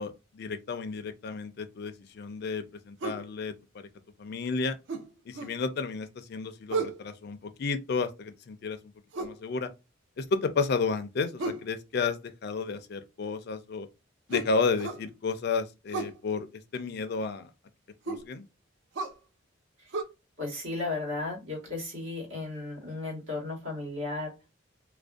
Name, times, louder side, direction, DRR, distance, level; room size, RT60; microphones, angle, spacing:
voice 1, 0.0-3.9 4.2-4.8 5.3-8.8 9.2-9.7 10.2-13.9 14.3-16.5 16.7-17.5 18.1-18.5, left 4 dB, 55° left, 0.4 m, -32 dB
sound 1, 3.0-3.3 4.9-5.6 6.7-7.0 9.1-9.4 11.4-11.7 14.3-15.1 15.9-16.2 18.1-18.3 18.9-19.2 19.9-20.0, right 2 dB, 65° right, 0.4 m, -33 dB
voice 2, 20.4-24.3, left 3 dB, 80° right, 1.3 m, -34 dB
2.5 x 2.1 x 2.3 m
head